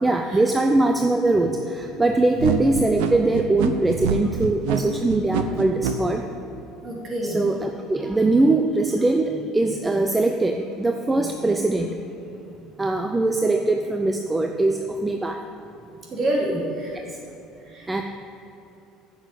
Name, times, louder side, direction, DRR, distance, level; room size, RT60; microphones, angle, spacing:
voice 1, 0.0-6.2 7.2-12.1 12.8-15.4 17.9-18.0, right 2 dB, 10° right, 5 dB, 0.5 m, -22 dB
sound 1, 2.4-5.9, right 7 dB, 85° right, 0.8 m, -25 dB
voice 2, 6.8-7.4 16.1-17.0 17.7-18.0, right 1 dB, 35° right, -2 dB, 2.8 m, -27 dB
9.9 x 6.4 x 8.2 m, 2.8 s
cardioid pair, 125°, 0 cm